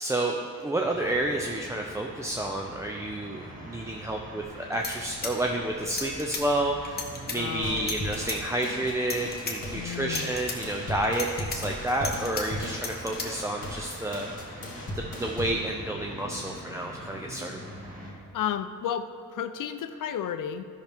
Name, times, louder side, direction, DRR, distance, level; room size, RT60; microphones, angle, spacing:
voice 1, 0.0-7.0 7.3-14.6 14.9-17.6, right 1 dB, 10° right, 0 dB, 0.4 m, -30 dB
sound 1, 0.8-18.1, equal, 25° right, 1.7 m, -44 dB
sound 2, 4.4-4.5 4.7-6.4 6.8-7.4 7.8-8.4 8.9-9.5 9.9-10.6 11.0-12.4 12.7-13.3, left 4 dB, 30° left, 1.1 m, -34 dB
voice 2, 7.3-7.9 9.7-10.3 18.3-20.6, left 9 dB, 75° left, 10 dB, 0.5 m, -32 dB
sound 3, 7.6-15.6, left 1 dB, 50° left, 2.0 m, -37 dB
13.0 x 5.9 x 3.5 m, 2.5 s
wide cardioid pair, 130°, 32 cm